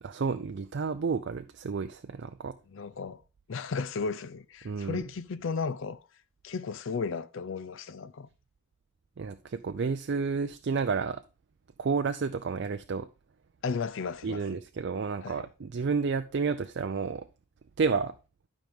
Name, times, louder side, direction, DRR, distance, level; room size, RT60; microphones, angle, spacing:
voice 1, 0.0-2.6 4.6-5.0 9.2-11.2 11.8-13.1 14.2-17.3 17.8-18.1, right 5 dB, 55° right, 0.4 m, -31 dB
voice 2, 2.7-3.2 3.5-6.0 6.4-8.3 13.6-14.4 15.2-15.4, left 5 dB, 60° left, 0.4 m, -34 dB
12.0 x 5.2 x 3.6 m
head